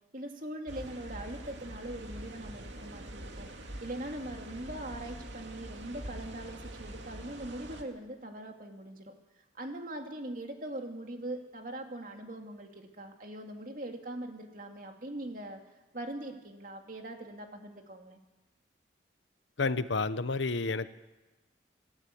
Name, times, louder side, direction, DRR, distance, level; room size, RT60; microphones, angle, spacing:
voice 1, 0.1-3.5 3.8-9.1 9.5-15.6 15.9-18.2, right 1 dB, 45° right, 3 dB, 2.6 m, -41 dB
sound 1, 0.7-7.8, right 1 dB, 80° right, 2.4 m, -44 dB
voice 2, 19.6-20.9, left 3 dB, 85° left, 13 dB, 0.9 m, -30 dB
26.5 x 13.0 x 8.6 m, 1.1 s
head